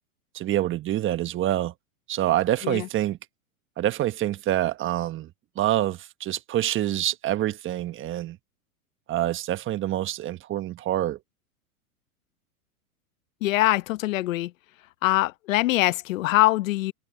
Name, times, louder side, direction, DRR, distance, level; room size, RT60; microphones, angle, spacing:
voice 1, 0.3-1.7 2.1-3.2 3.8-5.3 5.6-8.4 9.1-11.2, right 13 dB, 30° right, 1.3 m, -26 dB
voice 2, 13.4-14.5 15.0-16.9, left 17 dB, 65° left, 1.0 m, -23 dB
hypercardioid pair, 115°, 43 cm